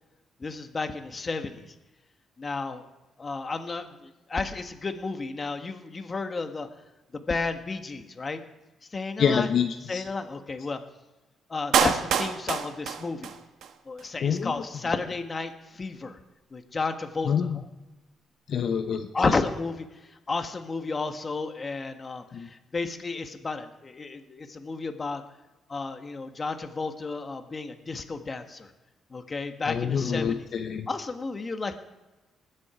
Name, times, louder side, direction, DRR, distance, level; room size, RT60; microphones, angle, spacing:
voice 1, 0.4-1.6 2.4-2.8 3.2-3.8 4.3-6.7 7.3-8.4 8.9-9.5 9.9-10.8 11.5-13.3 13.9-16.2 16.5-17.6 19.1-19.8 20.3-22.2 22.7-25.2 25.7-28.7 29.1-30.5 30.9-31.8, left 3 dB, 30° left, 6 dB, 1.5 m, -32 dB
voice 2, 9.2-10.0 14.2-14.5 17.2-17.6 18.5-19.1 22.3-22.5 29.7-30.9, left 7 dB, 60° left, 5 dB, 0.9 m, -26 dB
Clapping, 11.7-13.7 14.0-14.1, right 8 dB, 75° right, 1.0 m, -26 dB
20.5 x 7.5 x 5.0 m, 1.1 s
cardioid pair, 90°, 0 cm